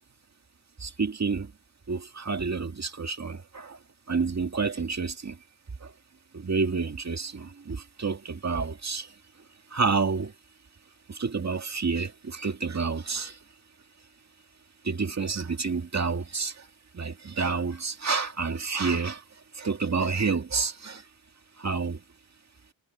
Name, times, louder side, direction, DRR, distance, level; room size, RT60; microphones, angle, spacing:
voice 1, 0.8-1.5 1.9-3.8 4.1-5.4 5.8-5.9 6.3-9.1 9.7-10.3 11.1-13.4 14.8-16.7 16.9-19.2 19.5-21.0 21.6-22.0, right 4 dB, 35° right, 2.2 m, -29 dB
wide cardioid pair, 170°, 47 cm